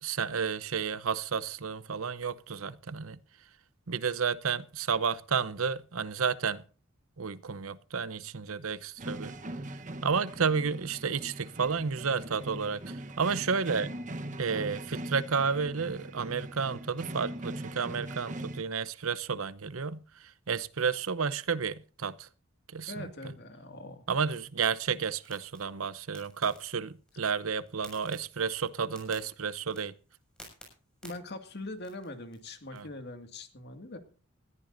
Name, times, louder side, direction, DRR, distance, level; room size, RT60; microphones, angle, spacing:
voice 1, 0.0-3.2 3.9-6.6 7.2-9.3 10.0-13.9 14.4-22.3 22.7-23.1 24.1-29.9 32.7-32.9, right 6 dB, 80° right, 0.8 m, -31 dB
sound 1, 9.0-18.6, right 1 dB, 35° right, 1.1 m, -41 dB
voice 2, 22.9-24.0 31.0-34.0, left 2 dB, 50° left, 2.1 m, -42 dB
sound 2, 24.4-32.8, equal, 5° left, 6.5 m, -56 dB
20.5 x 14.0 x 2.7 m
head